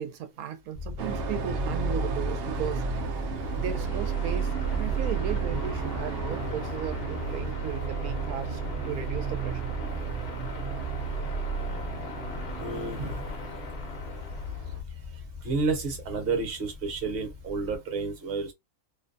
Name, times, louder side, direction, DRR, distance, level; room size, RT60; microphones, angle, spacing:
voice 1, 0.0-2.8 3.5-9.7, right 9 dB, 85° right, 1.0 m, -36 dB
sound 1, 0.7-17.8, left 5 dB, 30° left, 0.6 m, -41 dB
sound 2, 1.0-14.8, right 6 dB, 70° right, 0.5 m, -32 dB
sound 3, 3.3-14.8, left 3 dB, 55° left, 0.8 m, -41 dB
voice 2, 12.6-13.2 15.4-18.5, right 4 dB, 50° right, 1.0 m, -30 dB
2.6 x 2.1 x 2.6 m
omnidirectional pair, 1.5 m